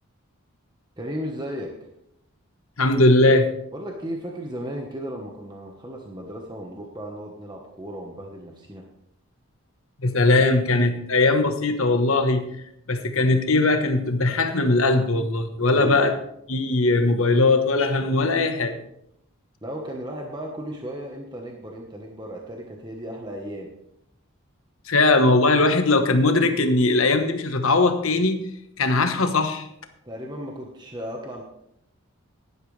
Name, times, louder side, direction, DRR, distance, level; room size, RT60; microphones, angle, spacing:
voice 1, 1.0-1.8 3.7-8.8 15.6-16.0 19.6-23.7 30.0-31.4, equal, 20° right, 0 dB, 1.3 m, -35 dB
voice 2, 2.8-3.5 10.0-12.4 12.9-16.1 16.5-18.8 24.9-28.4 28.8-29.7, left 2 dB, 70° left, 7 dB, 1.3 m, -20 dB
16.0 x 11.0 x 3.4 m, 0.76 s
head